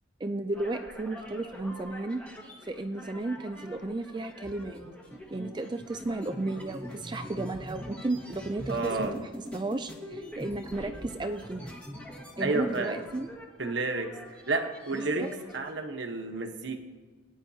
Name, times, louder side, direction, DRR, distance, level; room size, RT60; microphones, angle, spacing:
voice 1, 0.2-2.2 2.7-4.8 5.3-11.7 12.4-13.3 14.9-15.3, right 2 dB, 20° right, 8 dB, 0.3 m, -34 dB
sound 1, 0.5-15.7, equal, 5° left, 1.5 m, -43 dB
voice 2, 8.7-9.1 12.4-13.1 13.6-16.8, right 3 dB, 60° right, 5 dB, 1.1 m, -31 dB
21.5 x 9.6 x 2.8 m, 1.3 s
head